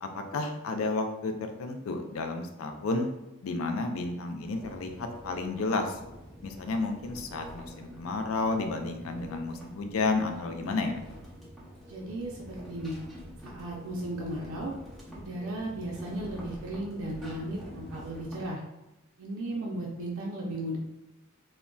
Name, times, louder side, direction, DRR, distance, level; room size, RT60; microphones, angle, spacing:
voice 1, 0.0-1.3 1.6-3.1 3.4-6.0 6.4-11.0, left 3 dB, 75° left, 5 dB, 0.4 m, -31 dB
sound 1, 4.4-18.5, equal, ahead, 0.5 m, -46 dB
voice 2, 11.9-13.0 13.4-14.7 15.1-18.6 19.2-20.8, right 1 dB, 80° right, -2 dB, 0.5 m, -35 dB
3.7 x 2.1 x 2.2 m, 0.95 s
head